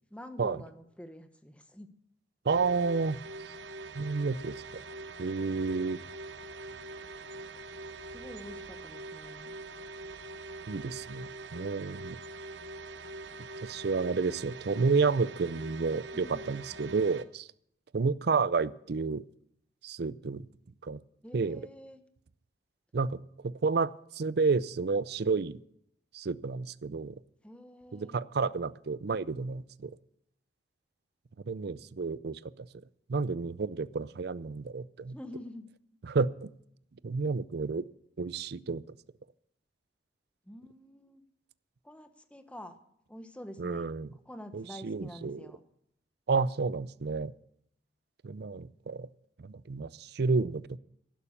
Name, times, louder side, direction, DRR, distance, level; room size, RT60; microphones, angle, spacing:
voice 1, 0.1-1.9 8.1-9.5 16.1-16.5 21.2-22.0 27.4-28.2 35.1-35.7 40.5-41.2 41.8-42.8 43.1-43.9 44.3-45.6, left 1 dB, 5° left, 8 dB, 1.2 m, -47 dB
voice 2, 2.4-3.2 3.9-4.8 5.2-6.0 10.7-12.2 13.6-17.5 17.9-19.2 19.8-20.5 20.8-21.0 21.3-21.6 22.9-25.6 26.1-27.2 27.9-29.9 31.4-32.7 33.1-35.2 36.0-36.5 37.0-37.8 38.2-38.8 43.6-44.1 44.5-45.5 46.3-47.3 48.2-49.1 49.4-50.8, right 4 dB, 65° right, 18 dB, 0.5 m, -30 dB
sound 1, 2.5-17.2, right 2 dB, 85° right, 0.8 m, -44 dB
11.5 x 11.5 x 7.1 m, 0.73 s
head